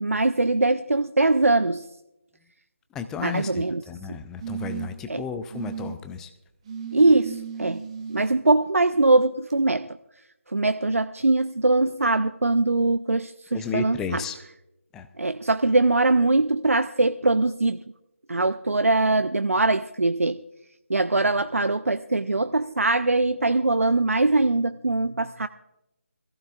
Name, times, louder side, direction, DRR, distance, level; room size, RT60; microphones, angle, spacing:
voice 1, 0.0-1.9 3.2-3.8 5.1-5.2 6.9-7.8 8.1-10.0 10.5-14.2 15.2-17.8 18.3-20.4 20.9-25.5, right 2 dB, 80° right, 0.5 m, -22 dB
voice 2, 2.9-6.3 13.5-14.4 14.9-15.1, left 6 dB, 5° left, 0.4 m, -33 dB
sound 1, 3.1-3.7 4.4-5.1 5.5-5.9 6.7-8.3 9.5-9.6, right 7 dB, 25° right, 0.9 m, -36 dB
22.0 x 15.0 x 2.4 m
figure-of-eight pair, 155°, 7 cm